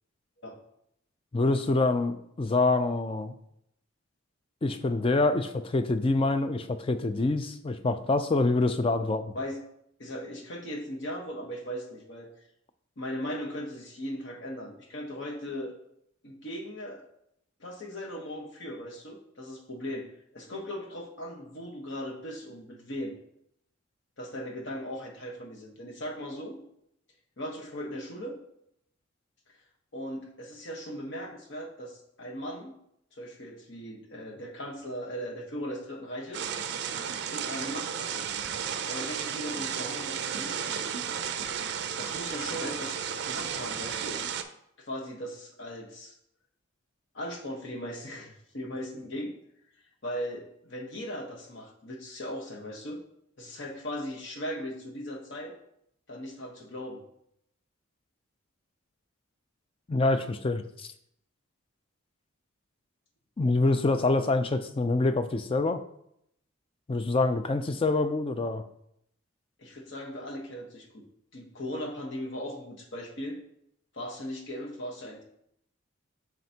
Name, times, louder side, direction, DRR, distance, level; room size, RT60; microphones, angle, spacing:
voice 1, 1.3-3.3 4.6-9.4 59.9-60.9 63.4-65.8 66.9-68.6, left 2 dB, 25° left, 10 dB, 0.3 m, -26 dB
voice 2, 10.0-12.3 13.0-15.7 16.2-17.1 17.6-20.1 20.3-23.1 24.2-26.6 27.4-28.4 29.9-32.8 33.1-36.5 37.2-38.3 38.8-40.9 42.0-44.2 44.8-46.1 47.1-49.3 50.0-53.0 53.4-55.6 56.1-57.0 69.6-71.1 71.3-73.4 73.9-75.2, equal, 60° left, 1 dB, 1.1 m, -38 dB
sound 1, 36.3-44.4, right 7 dB, 55° right, 0.4 m, -33 dB
7.6 x 5.0 x 2.8 m, 0.74 s
head